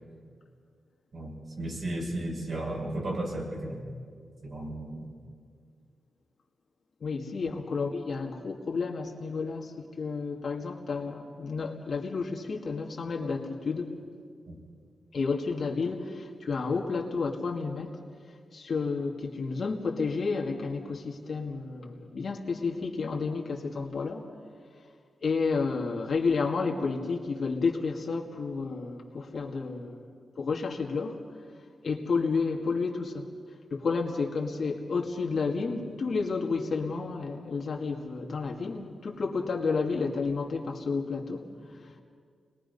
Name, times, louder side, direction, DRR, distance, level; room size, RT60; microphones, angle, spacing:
voice 1, 1.1-3.8 4.4-5.1 7.4-7.5 14.5-14.6, right 1 dB, 55° right, -2 dB, 6.0 m, -34 dB
voice 2, 7.0-13.9 15.1-18.0 18.5-24.3 25.2-30.1 30.4-31.2 31.8-33.3 33.7-42.0, left 4 dB, 60° left, 1 dB, 2.1 m, -31 dB
29.5 x 21.5 x 5.5 m, 2.1 s
cardioid pair, 95°, 0 cm